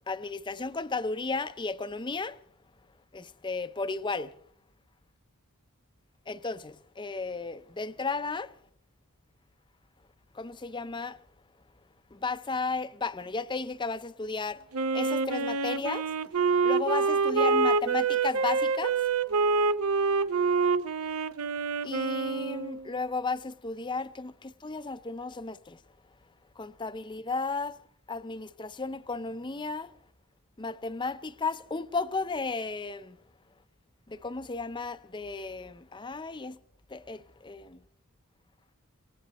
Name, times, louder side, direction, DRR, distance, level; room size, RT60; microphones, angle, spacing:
voice 1, 0.1-2.4 3.1-4.3 6.3-8.5 10.3-11.2 12.1-14.6 14.9-16.1 16.6-19.0 21.8-25.8 26.6-27.8 28.1-29.9 30.6-33.2 34.1-36.6 36.9-37.8, left 3 dB, 20° left, 0.5 m, -34 dB
Wind instrument woodwind instrument, 14.7-22.9, right 4 dB, 75° right, 0.7 m, -26 dB
27.5 x 17.0 x 3.0 m
head